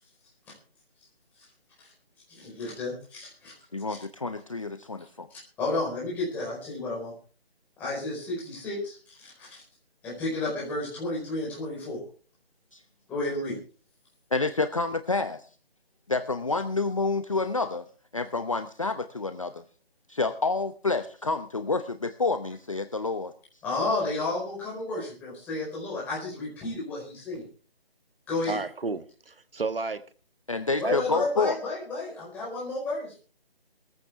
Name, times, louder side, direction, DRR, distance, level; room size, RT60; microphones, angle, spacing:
voice 1, 2.3-3.5 3.9-4.0 5.6-7.1 7.8-9.6 10.0-12.0 13.1-13.5 23.6-27.4 28.3-28.6 30.8-33.2, left 2 dB, 5° left, -5 dB, 4.6 m, -32 dB
voice 2, 3.7-5.3 12.7-12.8 14.3-15.4 16.1-17.9 18.1-19.6 20.1-23.3 30.5-31.6, left 3 dB, 35° left, 9 dB, 0.8 m, -28 dB
voice 3, 28.5-30.0 30.8-31.0, right 3 dB, 65° right, 11 dB, 1.4 m, -31 dB
19.5 x 14.5 x 3.5 m, 0.38 s
figure-of-eight pair, 175°, 31 cm